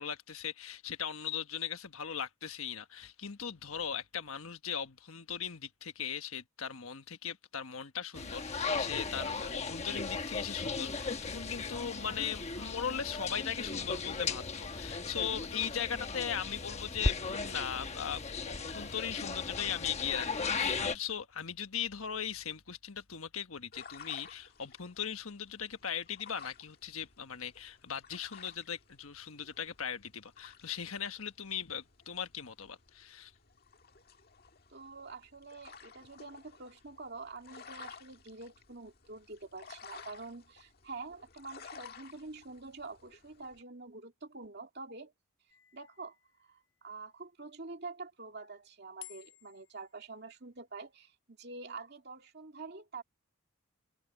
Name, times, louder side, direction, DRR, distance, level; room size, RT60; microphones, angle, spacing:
voice 1, 0.0-33.3, left 8 dB, 80° left, 1.3 m, -39 dB
sound 1, 8.1-20.9, left 4 dB, 30° left, 1.1 m, -36 dB
sound 2, 23.7-43.6, left 6 dB, 45° left, 1.7 m, -55 dB
voice 2, 34.7-45.1 45.7-46.2 46.5-53.0, right 3 dB, 50° right, 2.4 m, -46 dB
sound 3, 45.5-47.1 49.0-50.6, left 15 dB, 60° left, 6.8 m, -56 dB
head